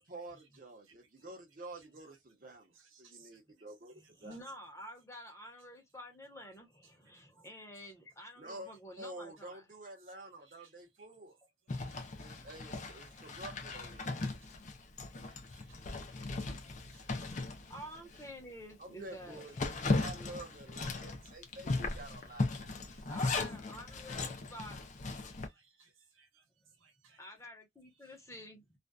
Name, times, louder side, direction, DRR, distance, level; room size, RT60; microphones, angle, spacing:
voice 1, 0.1-4.4 8.4-8.7 9.0-11.4 12.2-14.2 18.8-23.1, right 2 dB, 45° right, 0.8 m, -49 dB
voice 2, 2.9-3.3 10.6-10.7 11.9-12.0 14.4-14.5 15.5-15.8 16.1-16.2 16.7-17.0 25.5-26.4 26.8-27.2, right 6 dB, 90° right, 0.7 m, -64 dB
voice 3, 4.0-9.6 17.7-19.4 22.3-22.6 22.9-24.8 25.1-25.6 27.2-28.8, equal, 15° left, 0.8 m, -50 dB
Zipper (clothing), 11.7-18.3 18.7-18.8 19.2-25.5, left 3 dB, 35° left, 0.5 m, -37 dB
2.5 x 2.2 x 2.2 m
head